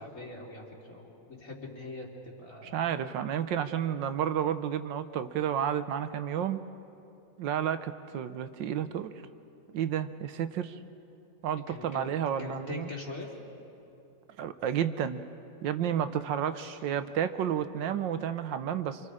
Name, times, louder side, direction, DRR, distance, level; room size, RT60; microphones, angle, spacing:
voice 1, 0.0-3.0 11.5-12.1 12.4-13.3 16.6-16.7, left 2 dB, 45° left, -2 dB, 3.7 m, -42 dB
voice 2, 2.6-6.6 7.4-9.1 9.7-10.8 11.4-12.9 14.4-15.2 15.6-19.0, right 9 dB, 75° right, 11 dB, 1.5 m, -31 dB
27.5 x 27.0 x 4.9 m, 2.8 s
omnidirectional pair, 2.0 m